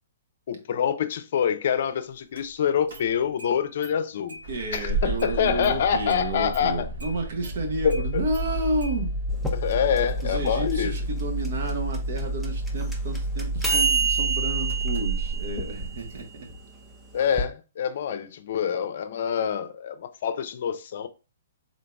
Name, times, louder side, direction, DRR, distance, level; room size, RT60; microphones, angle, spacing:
voice 1, 0.5-4.4 4.7-6.9 7.8-8.2 9.5-11.0 17.1-21.1, left 8 dB, 60° left, 0.5 m, -26 dB
Engine starting, 2.4-2.5 2.9-3.5 3.8-3.9 4.3-16.2, right 1 dB, 80° right, 1.8 m, -31 dB
voice 2, 4.5-9.2 10.2-16.3, right 2 dB, 65° right, 1.3 m, -31 dB
sound 1, 9.3-17.4, right 4 dB, 5° right, 0.7 m, -29 dB
3.9 x 3.8 x 2.3 m
hypercardioid pair, 140°, 0 cm